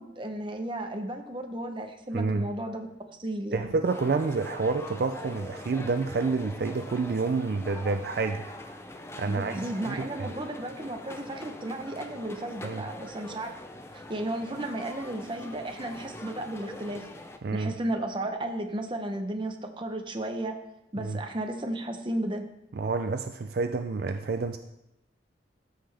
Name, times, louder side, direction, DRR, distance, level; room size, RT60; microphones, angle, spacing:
voice 1, 0.0-2.9 3.2-3.6 9.3-13.6 13.9-17.1 17.5-20.6 20.9-22.4, right 1 dB, 30° right, 5 dB, 0.8 m, -34 dB
voice 2, 2.1-2.5 3.5-8.4 9.2-10.3 12.6-12.8 17.4-17.7 21.0-21.2 22.7-24.6, right 4 dB, 60° right, 8 dB, 0.4 m, -29 dB
sound 1, 3.8-17.4, left 1 dB, 15° left, 0.5 m, -43 dB
13.5 x 5.7 x 3.4 m, 0.88 s
head